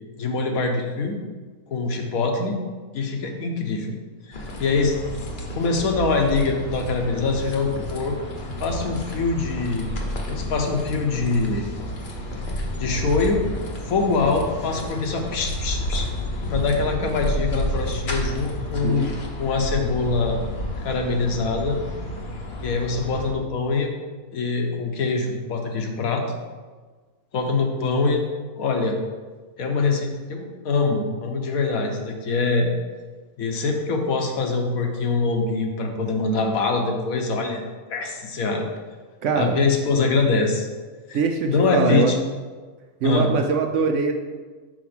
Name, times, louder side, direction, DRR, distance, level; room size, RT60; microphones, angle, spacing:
voice 1, 0.2-1.2 1.7-2.6 2.9-3.9 4.3-4.9 5.5-8.2 8.6-9.9 10.3-11.6 12.6-13.4 13.8-16.1 16.5-19.1 19.4-20.4 20.8-21.8 22.6-23.9 24.3-26.2 27.3-28.3 28.6-29.0 29.6-32.7 33.4-37.6 37.9-38.6 39.4-40.7 41.1-42.2 43.0-43.3, left 4 dB, 75° left, 3 dB, 1.3 m, -24 dB
sound 1, 4.3-23.3, left 1 dB, 40° left, 0.9 m, -31 dB
voice 2, 39.2-39.6 41.1-42.2 43.0-44.1, right 5 dB, 65° right, 5 dB, 0.8 m, -22 dB
5.1 x 4.4 x 5.8 m, 1.4 s
omnidirectional pair, 1.5 m